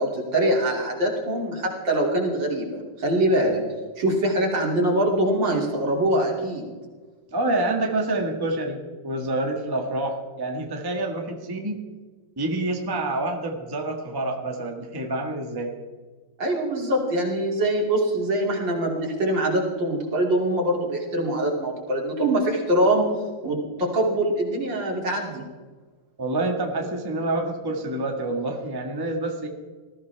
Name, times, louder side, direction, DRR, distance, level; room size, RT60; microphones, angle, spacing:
voice 1, 0.0-3.6 4.0-6.7 16.4-23.1 23.4-25.4, right 1 dB, 60° right, -1 dB, 3.4 m, -23 dB
voice 2, 7.3-11.8 12.4-15.7 26.2-29.5, right 2 dB, 10° right, 2 dB, 1.4 m, -27 dB
20.0 x 14.5 x 3.4 m, 1.4 s
omnidirectional pair, 2.3 m